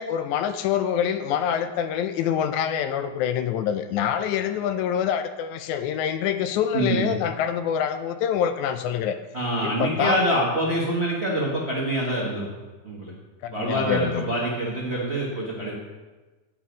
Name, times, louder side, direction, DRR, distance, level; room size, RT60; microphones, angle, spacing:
voice 1, 0.0-9.2 9.6-10.2 13.4-14.3, left 9 dB, 80° left, 9 dB, 1.9 m, -26 dB
voice 2, 6.7-7.1 9.3-12.5 12.8-13.1 13.5-15.7, right 1 dB, 60° right, -5 dB, 0.6 m, -25 dB
9.4 x 5.8 x 5.1 m, 1.2 s
omnidirectional pair, 3.5 m